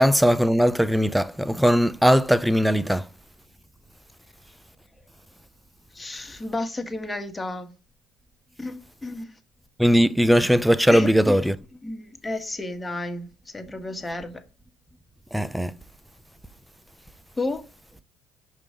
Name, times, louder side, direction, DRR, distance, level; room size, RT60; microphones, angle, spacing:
voice 1, 0.0-3.0 9.8-11.6 15.3-15.7, equal, ahead, 0.6 m, -19 dB
voice 2, 5.9-7.7 8.6-9.3 10.9-11.5 11.8-14.4 17.4-17.6, left 2 dB, 15° left, 1.5 m, -32 dB
5.9 x 5.2 x 3.7 m
supercardioid pair, 75°, 0 cm